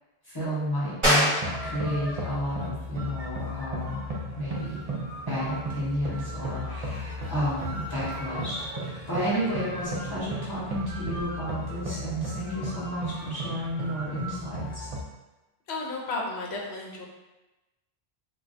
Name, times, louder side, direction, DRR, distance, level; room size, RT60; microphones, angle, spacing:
voice 1, 0.2-1.3 1.6-4.9 5.3-14.9, equal, 25° left, -9 dB, 0.9 m, -32 dB
sound 1, 1.0-11.3, equal, 30° right, 0.9 m, -33 dB
sound 2, 1.4-15.0, equal, 55° right, 0.4 m, -35 dB
voice 2, 15.7-17.1, left 2 dB, 80° left, -2 dB, 0.9 m, -33 dB
2.3 x 2.2 x 3.9 m, 1.1 s
omnidirectional pair, 1.1 m